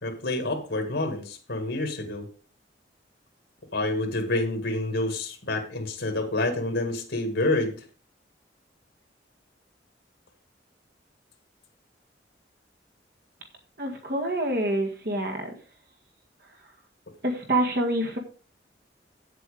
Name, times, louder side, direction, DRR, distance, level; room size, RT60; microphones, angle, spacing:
voice 1, 0.0-2.3 3.7-7.7, left 2 dB, 80° left, 4 dB, 2.1 m, -28 dB
voice 2, 13.8-15.5 16.4-16.6 17.2-18.2, right 1 dB, 55° right, 1 dB, 1.9 m, -27 dB
8.5 x 7.7 x 5.0 m, 0.38 s
head